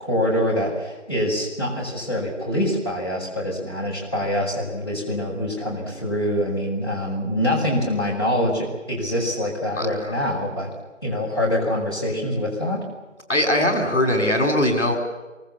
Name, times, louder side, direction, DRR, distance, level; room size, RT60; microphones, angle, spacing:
voice 1, 0.0-10.7 11.0-12.8, left 1 dB, 20° left, -7 dB, 6.2 m, -25 dB
voice 2, 9.8-10.1 13.3-15.0, left 1 dB, 65° left, 4 dB, 4.6 m, -21 dB
26.5 x 24.5 x 7.3 m, 1.2 s
figure-of-eight pair, 180°, 38 cm